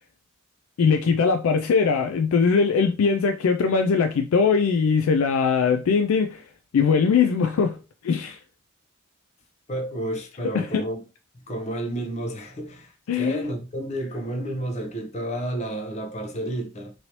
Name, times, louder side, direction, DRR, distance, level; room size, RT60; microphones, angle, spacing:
voice 1, 0.8-6.4 6.7-7.8 8.0-8.4 10.5-10.8 13.1-13.5, left 5 dB, 85° left, 0.4 m, -21 dB
voice 2, 9.7-11.0 11.3-16.9, right 1 dB, 35° left, 0.6 m, -31 dB
3.1 x 2.7 x 2.9 m
head